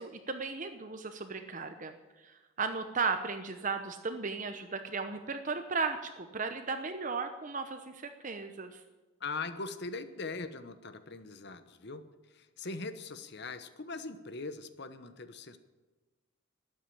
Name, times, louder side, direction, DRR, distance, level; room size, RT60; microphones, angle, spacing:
voice 1, 0.0-8.8, right 4 dB, 40° right, 7 dB, 0.9 m, -36 dB
voice 2, 9.2-15.6, left 3 dB, 55° left, 11 dB, 1.0 m, -41 dB
13.0 x 9.2 x 9.9 m, 1.2 s
head